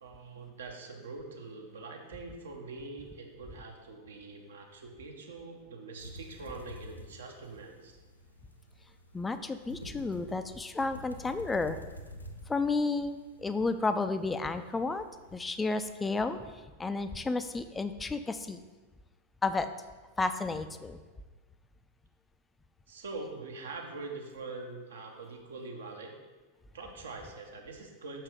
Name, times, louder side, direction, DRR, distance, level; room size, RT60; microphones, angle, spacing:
voice 1, 0.0-8.0 22.9-26.1 26.7-28.2, right 3 dB, 65° right, 2 dB, 1.2 m, -44 dB
sound 1, 6.0-16.1, left 1 dB, 85° left, 0.7 m, -50 dB
voice 2, 9.1-11.8 12.5-15.1 15.3-16.4 16.8-18.6 19.4-19.7 20.2-21.0, left 3 dB, 10° left, 10 dB, 0.4 m, -32 dB
6.2 x 5.9 x 5.0 m, 1.3 s
figure-of-eight pair, 90°, 0 cm